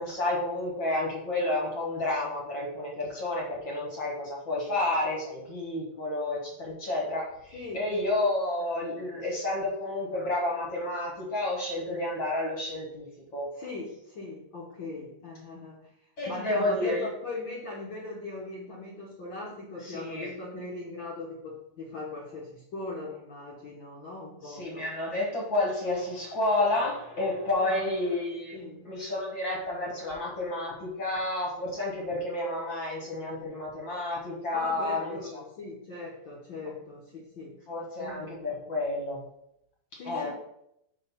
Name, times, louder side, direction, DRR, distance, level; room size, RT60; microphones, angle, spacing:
voice 1, 0.0-13.0 13.3-13.5 16.2-17.0 19.8-20.3 24.4-35.4 37.7-39.2 39.9-40.3, left 2 dB, 50° left, -3 dB, 1.7 m, -30 dB
voice 2, 7.5-7.9 13.6-15.9 16.2-24.9 27.5-27.9 28.5-28.8 34.5-37.6 38.0-38.5 40.0-40.3, left 3 dB, 65° left, -4 dB, 1.2 m, -39 dB
5.5 x 4.3 x 5.5 m, 0.79 s
omnidirectional pair, 3.5 m